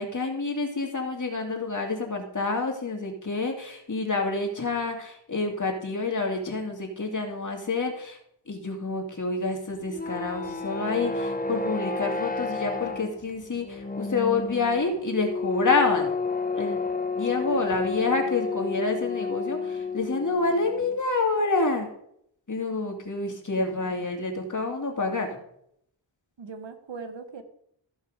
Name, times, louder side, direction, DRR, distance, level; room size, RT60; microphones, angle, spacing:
voice 1, 0.0-8.2 8.5-16.1 16.5-16.8 17.2-21.9 22.5-25.4, left 3 dB, 40° left, 2 dB, 2.3 m, -28 dB
sound 1, 9.7-21.0, left 4 dB, 20° left, 0.8 m, -31 dB
voice 2, 17.5-17.9 23.8-23.9 26.4-27.4, right 5 dB, 70° right, 8 dB, 1.4 m, -39 dB
14.5 x 5.4 x 5.1 m, 0.72 s
wide cardioid pair, 90°, 46 cm